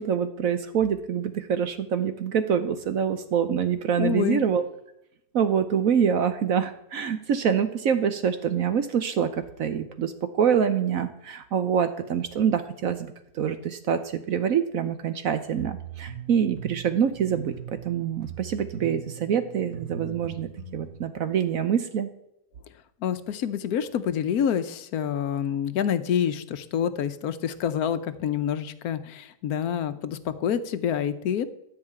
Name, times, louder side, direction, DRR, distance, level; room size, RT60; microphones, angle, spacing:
voice 1, 0.0-4.6 5.3-9.3 9.6-17.5 17.8-22.1, right 7 dB, 65° right, 10 dB, 1.1 m, -25 dB
voice 2, 4.0-4.4 23.0-31.5, left 8 dB, 70° left, 12 dB, 1.2 m, -27 dB
sound 1, 15.6-20.9, right 8 dB, 45° right, 2.0 m, -40 dB
13.5 x 4.9 x 8.8 m, 0.78 s
omnidirectional pair, 1.7 m